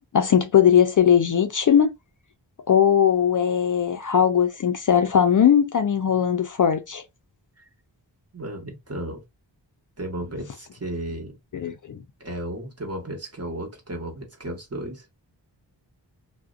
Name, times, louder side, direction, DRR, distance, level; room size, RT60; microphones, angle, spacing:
voice 1, 0.1-1.9 2.7-7.0 11.5-12.0, left 8 dB, 45° left, 0.4 m, -19 dB
voice 2, 8.3-9.2 10.0-11.4 12.2-15.3, right 1 dB, 35° right, 1.1 m, -34 dB
2.4 x 2.1 x 2.4 m
cardioid pair, 55°, 44 cm